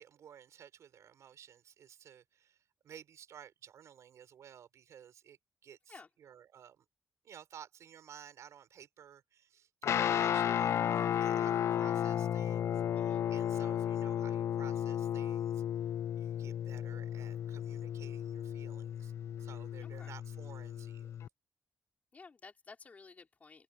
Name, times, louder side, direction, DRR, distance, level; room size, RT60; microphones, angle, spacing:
voice 1, 0.0-6.8 7.2-15.6 16.2-19.1 19.4-21.2, right 9 dB, 75° right, 4.7 m, -55 dB
Guitar, 9.8-21.3, left 10 dB, 60° left, 0.3 m, -34 dB
voice 2, 19.8-20.1 22.1-23.6, left 4 dB, 30° left, 4.2 m, -54 dB
open air
wide cardioid pair, 180°, 5 cm